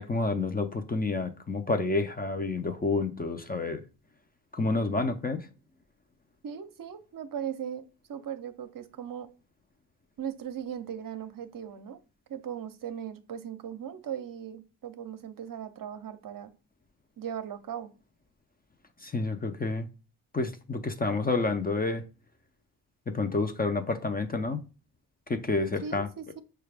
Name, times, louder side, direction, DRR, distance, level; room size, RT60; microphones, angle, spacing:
voice 1, 0.0-3.8 4.5-5.5 19.0-19.9 20.3-22.0 23.1-24.6 25.3-26.1, left 3 dB, 25° left, 0.5 m, -29 dB
voice 2, 6.4-9.3 10.2-12.0 12.3-16.5 17.2-17.9 25.8-26.4, right 8 dB, 55° right, 0.6 m, -38 dB
5.5 x 2.3 x 3.4 m
cardioid pair, 65°, 41 cm